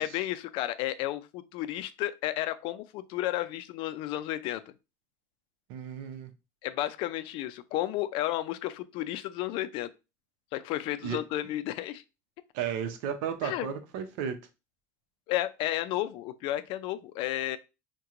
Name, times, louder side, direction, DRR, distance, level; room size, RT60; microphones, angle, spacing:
voice 1, 0.0-4.7 6.6-9.9 10.5-12.0 13.4-13.7 15.3-17.6, left 14 dB, 60° left, 0.4 m, -32 dB
voice 2, 5.7-6.3 11.0-11.2 12.5-14.3, right 8 dB, 75° right, 0.7 m, -34 dB
2.9 x 2.2 x 3.6 m
supercardioid pair, 115°, 10 cm